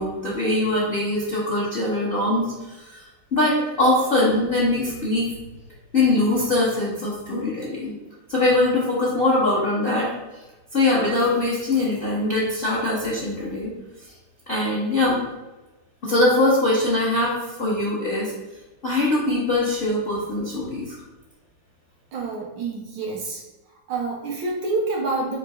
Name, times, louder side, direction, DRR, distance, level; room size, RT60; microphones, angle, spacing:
voice 1, 0.0-3.0 3.3-5.3 5.9-7.9 8.3-10.1 10.7-13.7 14.5-15.2 16.0-18.3 18.8-21.0, left 2 dB, 65° left, -7 dB, 0.5 m, -22 dB
voice 2, 22.1-23.4 23.9-25.4, right 3 dB, 75° right, 0 dB, 1.1 m, -27 dB
3.7 x 3.1 x 3.6 m, 1.1 s
omnidirectional pair, 2.4 m